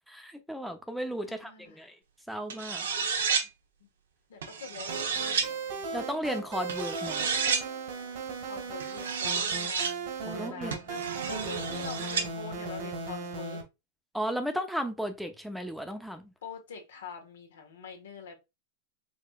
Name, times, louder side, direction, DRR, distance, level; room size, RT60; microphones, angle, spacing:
voice 1, 0.1-2.0 2.3-2.9 5.9-7.3 10.2-10.7 14.1-16.3, equal, ahead, 0.7 m, -35 dB
voice 2, 1.2-1.9 3.0-3.2 4.3-5.6 8.4-9.9 10.3-13.6 16.4-18.4, left 6 dB, 85° left, 1.4 m, -44 dB
sound 1, 2.5-3.5 4.4-5.5 6.7-7.7 8.8-9.9 10.7-12.3, right 6 dB, 85° right, 0.9 m, -31 dB
sound 2, 4.9-13.6, right 4 dB, 65° right, 1.8 m, -37 dB
5.0 x 3.2 x 2.4 m
hypercardioid pair, 115°, 0 cm